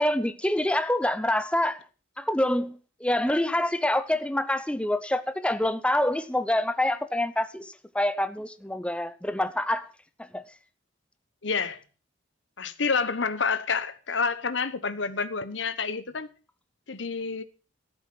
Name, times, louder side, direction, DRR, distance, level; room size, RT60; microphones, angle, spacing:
voice 1, 0.0-1.8 2.2-9.9 10.2-10.4, left 1 dB, 5° left, 0.6 m, -26 dB
voice 2, 11.4-11.8 12.6-16.3 16.9-17.4, left 5 dB, 65° left, 1.0 m, -28 dB
13.5 x 8.1 x 6.0 m
head